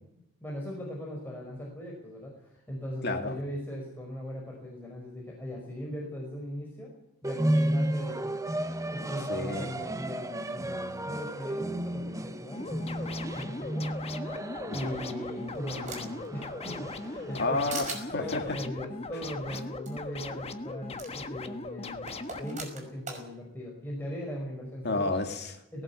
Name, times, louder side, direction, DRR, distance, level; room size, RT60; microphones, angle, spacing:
voice 1, 0.4-6.9 7.2-8.4 8.7-14.3 14.7-17.6 18.2-22.1 22.3-25.1 25.7-25.8, equal, 10° left, -3 dB, 5.4 m, -39 dB
voice 2, 3.0-3.4 9.3-9.7 14.7-14.9 17.4-18.4 19.5-19.6 24.8-25.5, left 2 dB, 50° left, 6 dB, 2.2 m, -30 dB
sound 1, 7.2-17.4, right 1 dB, 15° right, 0.8 m, -33 dB
sound 2, 12.5-22.6, left 3 dB, 25° left, 1.4 m, -39 dB
sound 3, 14.9-16.3 16.7-17.4 17.7-18.0 19.5-19.6 19.9-20.0 21.0-21.1 22.1-23.2, right 4 dB, 35° right, 5.5 m, -40 dB
19.0 x 17.5 x 8.4 m, 0.83 s
head